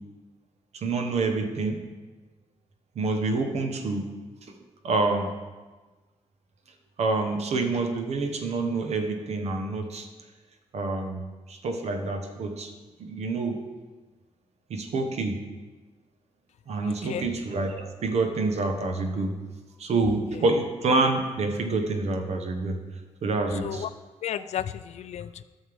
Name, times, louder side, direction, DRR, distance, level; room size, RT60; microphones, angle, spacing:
voice 1, 0.7-1.8 3.0-4.0 4.8-5.3 7.0-10.1 10.7-12.7 13.0-13.6 14.7-15.4 16.7-19.3 19.8-22.8 23.2-23.8, right 3 dB, 70° right, 5 dB, 1.0 m, -27 dB
voice 2, 16.8-17.3 20.3-20.4 23.6-23.9 24.2-25.4, left 10 dB, 75° left, 14 dB, 0.4 m, -33 dB
13.0 x 6.5 x 3.5 m, 1.3 s
wide cardioid pair, 175°, 12 cm